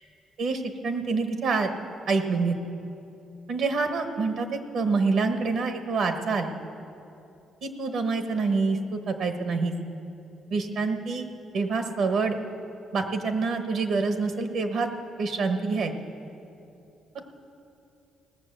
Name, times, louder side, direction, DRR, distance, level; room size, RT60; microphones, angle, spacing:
voice 1, 0.4-1.7 2.1-2.5 3.5-6.6 7.6-9.7 10.5-11.3 11.5-12.3 12.9-14.9 15.2-15.9, right 4 dB, 70° right, 7 dB, 1.2 m, -26 dB
18.0 x 7.3 x 6.7 m, 2.8 s
cardioid pair, 90°, 0 cm